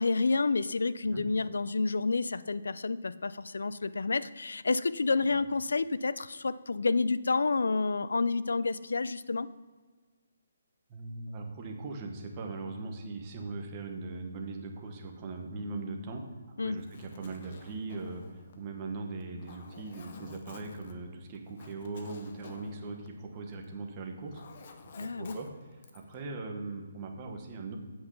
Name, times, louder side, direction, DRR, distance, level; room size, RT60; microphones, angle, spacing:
voice 1, 0.0-9.5 16.6-16.8 25.0-25.4, left 3 dB, 85° left, 16 dB, 0.4 m, -29 dB
voice 2, 10.9-24.4 24.8-27.8, right 3 dB, 15° right, 2 dB, 1.0 m, -40 dB
Zipper (clothing), 16.7-23.8 24.1-26.2, left 4 dB, 30° left, 0.7 m, -52 dB
7.9 x 5.7 x 6.9 m, 1.4 s
hypercardioid pair, 175°, 0 cm